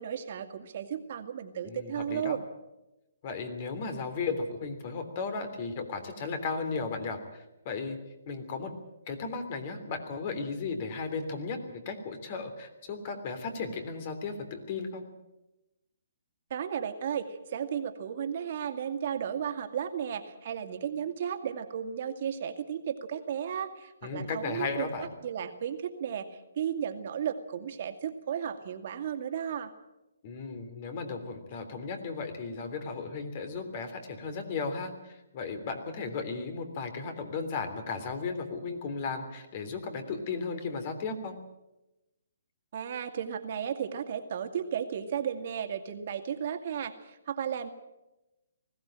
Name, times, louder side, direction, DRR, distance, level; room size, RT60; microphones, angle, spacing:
voice 1, 0.0-2.4 16.5-29.7 42.7-47.7, right 8 dB, 50° right, 6 dB, 2.3 m, -34 dB
voice 2, 1.6-2.4 3.2-8.0 8.3-8.7 9.1-15.0 24.0-25.1 30.2-41.4, left 4 dB, 40° left, 8 dB, 3.3 m, -35 dB
20.5 x 16.0 x 8.9 m, 0.97 s
hypercardioid pair, 155°, 0 cm